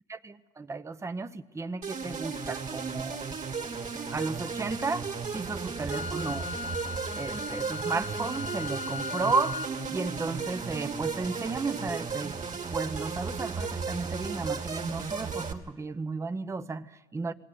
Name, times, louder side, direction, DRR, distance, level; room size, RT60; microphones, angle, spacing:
voice 1, 0.1-3.3 4.1-6.5 7.2-17.3, right 4 dB, 15° right, 0.8 m, -34 dB
sound 1, 1.8-15.5, right 5 dB, 45° right, 2.4 m, -35 dB
Wind instrument woodwind instrument, 5.9-9.7, left 4 dB, 40° left, 0.9 m, -38 dB
20.5 x 17.0 x 9.4 m
cardioid pair, 110°, 17 cm